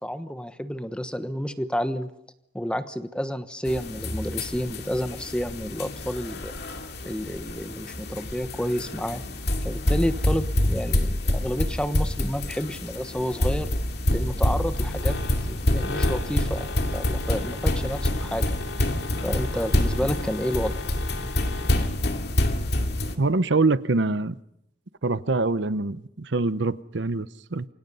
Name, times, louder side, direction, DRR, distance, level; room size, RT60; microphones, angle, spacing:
voice 1, 0.0-2.1 2.5-6.5 7.0-9.2 9.6-13.7 14.1-15.2 15.5-18.5 19.2-20.7 21.2-21.3, equal, 5° left, 10 dB, 1.1 m, -30 dB
sound 1, 3.7-23.2, left 1 dB, 60° left, 2.5 m, -27 dB
sound 2, 14.7-21.9, left 3 dB, 85° left, 5.1 m, -37 dB
voice 2, 23.2-24.4 25.0-27.7, right 3 dB, 75° right, 14 dB, 0.8 m, -24 dB
28.5 x 25.5 x 5.6 m, 0.79 s
head